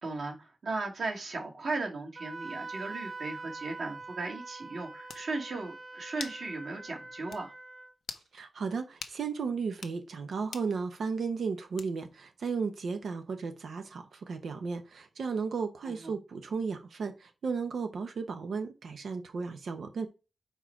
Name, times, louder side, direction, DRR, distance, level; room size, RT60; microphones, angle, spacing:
voice 1, 0.0-7.5 15.9-16.1, right 3 dB, 60° right, 2.2 m, -36 dB
Wind instrument woodwind instrument, 2.2-7.9, right 3 dB, 25° right, 0.8 m, -44 dB
sound 1, 4.6-4.7 5.1-5.3 6.2-6.4 6.8-6.9 7.3-7.4 8.0-8.3 9.0-9.2 9.7-10.0 10.5-10.7 11.8-12.1, left 6 dB, 80° left, 0.6 m, -42 dB
voice 2, 8.3-20.1, right 5 dB, 80° right, 0.8 m, -34 dB
4.5 x 4.5 x 5.7 m
wide cardioid pair, 165°, 0 cm